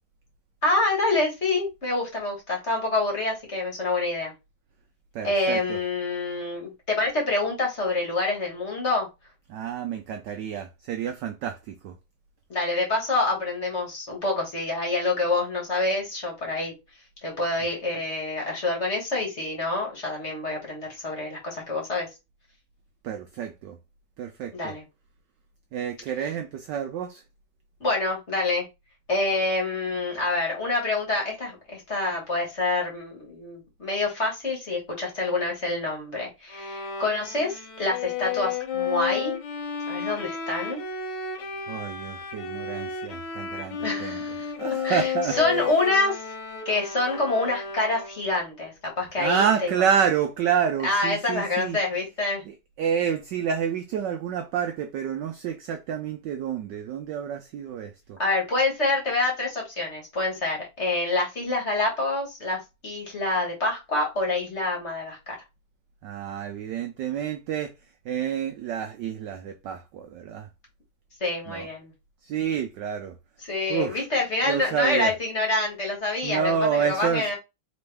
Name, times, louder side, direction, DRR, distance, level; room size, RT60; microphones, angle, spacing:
voice 1, 0.6-4.3 5.2-9.1 12.5-16.7 17.2-22.1 24.5-24.8 27.8-28.6 29.1-39.4 39.9-40.8 43.8-44.5 44.8-46.2 46.6-49.8 50.8-52.4 58.2-65.4 71.2-71.9 73.4-77.4, left 2 dB, 35° left, 1.5 m, -27 dB
voice 2, 5.1-5.8 9.5-11.9 23.0-23.8 24.2-24.7 25.7-27.2 41.7-44.2 44.6-45.4 49.2-51.8 52.5-58.2 66.0-67.7 68.0-70.5 71.5-71.7 72.2-73.1 73.7-74.0 74.5-75.1 76.2-77.3, right 8 dB, 75° right, 1.0 m, -28 dB
Bowed string instrument, 36.5-48.3, left 6 dB, 70° left, 1.6 m, -32 dB
4.3 x 3.0 x 3.3 m
omnidirectional pair, 2.4 m